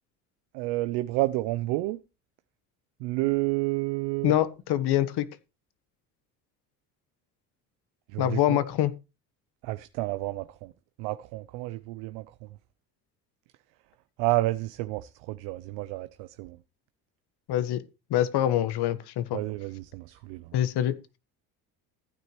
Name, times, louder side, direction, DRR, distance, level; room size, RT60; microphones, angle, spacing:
voice 1, 0.5-2.0 3.0-4.3 8.1-8.6 9.6-10.7 11.0-12.5 14.2-16.6 19.3-20.5, right 19 dB, 70° right, 0.7 m, -30 dB
voice 2, 4.2-5.3 8.2-8.9 17.5-17.8 18.1-19.4 20.5-20.9, left 12 dB, 60° left, 1.4 m, -25 dB
15.0 x 9.4 x 3.2 m
hypercardioid pair, 65°, 44 cm